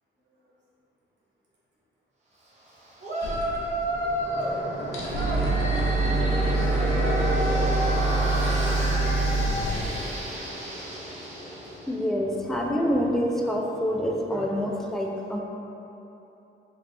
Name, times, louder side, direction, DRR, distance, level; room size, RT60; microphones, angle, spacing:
Yell, 3.0-4.6 5.1-11.8, equal, 35° right, 0.7 m, -32 dB
sound 1, 3.2-4.2 4.5-4.6 4.8-10.1, right 2 dB, 80° left, 0.6 m, -26 dB
voice 1, 3.4-4.8 11.3-11.8, equal, 60° right, -7 dB, 0.9 m, -62 dB
sound 2, 3.8-14.5, equal, 30° left, 0.9 m, -33 dB
voice 2, 11.9-15.4, equal, ahead, -1 dB, 0.3 m, -26 dB
3.3 x 3.1 x 2.5 m, 3.0 s
cardioid pair, 95°, 21 cm